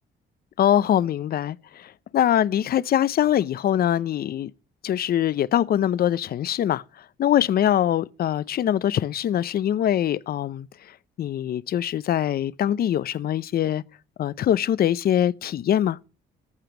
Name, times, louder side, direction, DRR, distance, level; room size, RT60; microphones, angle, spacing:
voice 1, 0.6-4.5 4.8-6.8 7.2-10.7 11.2-13.8 14.2-16.0, left 11 dB, 50° left, 0.5 m, -23 dB
14.0 x 5.1 x 5.9 m
cardioid pair, 90°, 20 cm